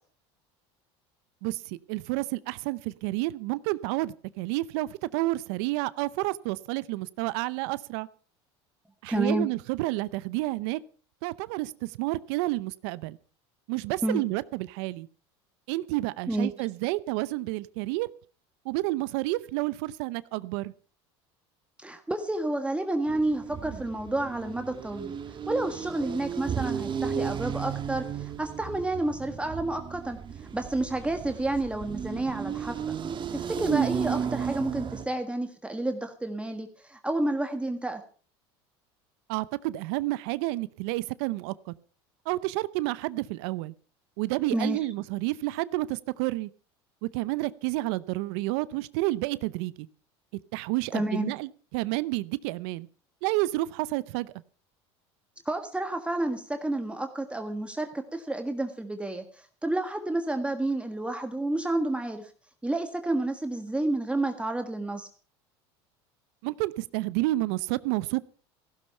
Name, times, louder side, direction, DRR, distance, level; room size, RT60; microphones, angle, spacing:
voice 1, 1.4-8.1 9.0-10.8 11.2-13.2 13.7-15.1 15.7-18.1 18.7-20.7 39.3-41.5 42.3-43.7 44.2-46.5 47.0-49.9 50.5-52.9 53.2-54.3 66.4-68.2, right 19 dB, 70° right, 18 dB, 0.7 m, -30 dB
voice 2, 9.1-9.5 14.0-14.2 16.3-16.5 21.8-25.1 25.5-32.8 33.3-38.0 44.5-44.9 50.9-51.3 55.4-62.3 62.6-65.1, right 2 dB, 10° right, 6 dB, 1.6 m, -30 dB
sound 1, 23.1-35.0, right 7 dB, 35° right, 1.6 m, -33 dB
15.5 x 12.5 x 5.6 m, 0.40 s
supercardioid pair, 95°, 14 cm